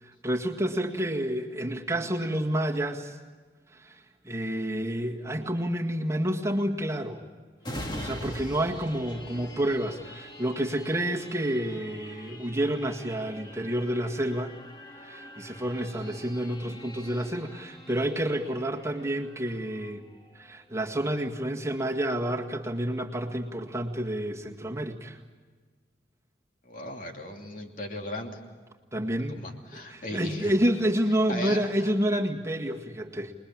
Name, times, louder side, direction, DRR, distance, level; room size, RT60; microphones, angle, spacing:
voice 1, 0.0-3.2 3.7-7.2 8.0-14.6 15.0-20.1 20.4-25.2 28.9-29.4 29.7-33.3, right 1 dB, 15° right, 1 dB, 1.9 m, -29 dB
sound 1, 7.6-20.9 21.4-21.5, left 1 dB, 25° left, 1.9 m, -44 dB
voice 2, 26.6-28.4 29.1-30.5 31.3-31.9, left 1 dB, 50° left, 2 dB, 2.8 m, -37 dB
27.5 x 21.0 x 8.7 m, 1.5 s
head